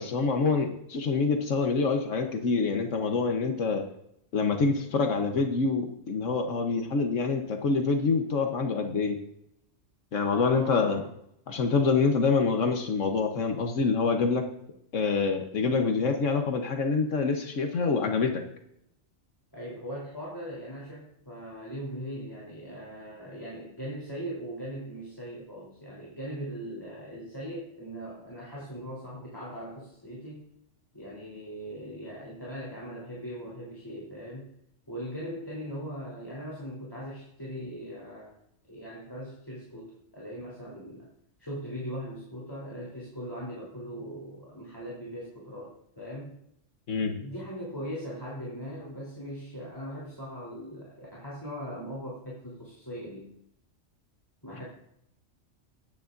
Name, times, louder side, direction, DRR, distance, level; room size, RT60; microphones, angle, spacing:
voice 1, 0.0-3.8 4.3-9.2 10.1-11.0 11.5-14.4 14.9-18.4 46.9-47.1, left 4 dB, 80° left, 4 dB, 1.4 m, -26 dB
voice 2, 10.4-11.1 19.5-30.5 30.9-34.5 34.9-38.4 38.7-41.1 41.4-46.4 47.2-53.3 54.4-54.6, equal, 20° left, -6 dB, 3.5 m, -40 dB
20.5 x 9.7 x 2.6 m, 0.77 s
omnidirectional pair, 1.3 m